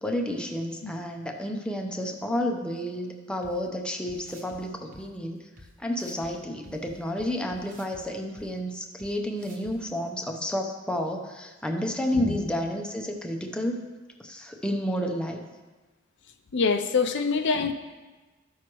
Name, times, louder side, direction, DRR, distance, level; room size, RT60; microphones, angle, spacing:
voice 1, 0.0-5.4 5.8-13.8 14.2-15.4, equal, 5° left, 2 dB, 0.7 m, -31 dB
sound 1, 3.4-3.5 4.1-4.6 4.9-5.0 5.6-5.7 5.9-6.3 6.6-8.0 8.4-8.5 9.0-9.1 9.4-9.7, equal, 40° right, 1.2 m, -49 dB
voice 2, 16.5-17.7, left 5 dB, 60° left, 6 dB, 0.5 m, -25 dB
13.0 x 6.1 x 3.0 m, 1.2 s
head